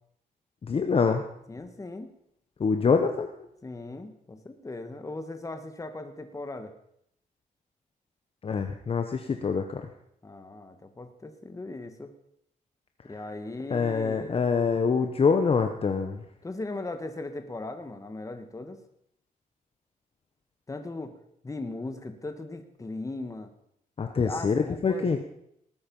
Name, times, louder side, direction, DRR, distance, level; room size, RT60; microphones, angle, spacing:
voice 1, 0.6-1.2 2.6-3.3 8.4-9.9 13.7-16.2 24.0-25.2, left 5 dB, 40° left, 6 dB, 1.0 m, -25 dB
voice 2, 1.5-2.1 3.6-6.7 10.2-12.1 13.0-14.4 16.4-18.8 20.7-21.1 21.4-23.5 24.2-25.2, left 2 dB, 20° left, 8 dB, 1.6 m, -38 dB
19.0 x 9.5 x 5.4 m, 0.74 s
cardioid pair, 115°, 15 cm